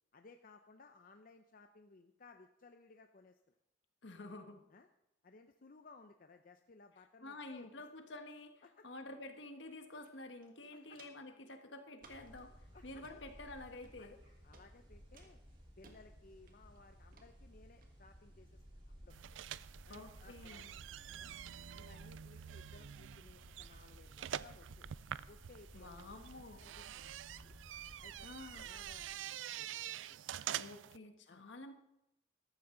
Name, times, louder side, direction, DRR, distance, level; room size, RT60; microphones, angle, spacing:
voice 1, 0.1-3.5 4.2-4.3 4.7-4.9 5.2-7.7 8.6-8.9 10.7-11.0 12.7-13.2 14.0-14.2 14.4-15.4 15.8-18.6 19.0-19.2 19.8-20.8 21.2-21.4 21.7-24.9 25.3-25.9 26.6-27.5 28.0-30.2 31.3-31.4, left 3 dB, 50° left, 6 dB, 0.6 m, -61 dB
voice 2, 4.0-4.6 7.2-12.5 12.8-14.1 19.9-20.7 25.7-26.6 28.2-28.7 30.5-31.7, left 2 dB, 75° left, 6 dB, 1.4 m, -50 dB
Walk footsteps, 10.0-10.1 10.4-11.3 12.0-12.4 12.9-13.2 13.8-14.2 14.5-14.7 15.1-16.0 16.5-16.8 17.1-17.3 17.8-17.9, right 3 dB, 50° right, 1.6 m, -62 dB
sound 1, 12.0-29.0, equal, 30° right, 3.4 m, -58 dB
sound 2, 19.1-31.0, right 11 dB, 85° right, 0.4 m, -47 dB
14.0 x 12.5 x 3.9 m, 0.85 s
head